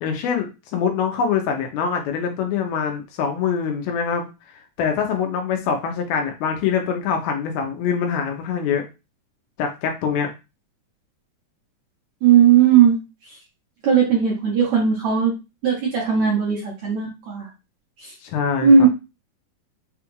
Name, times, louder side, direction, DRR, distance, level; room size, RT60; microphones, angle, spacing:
voice 1, 0.0-4.3 4.8-8.9 9.6-10.3 18.2-18.9, left 6 dB, 80° left, 4 dB, 2.5 m, -24 dB
voice 2, 12.2-13.0 13.8-15.3 15.6-17.5 18.6-18.9, right 7 dB, 70° right, -5 dB, 1.8 m, -16 dB
6.1 x 2.4 x 3.1 m, 0.27 s
omnidirectional pair, 4.5 m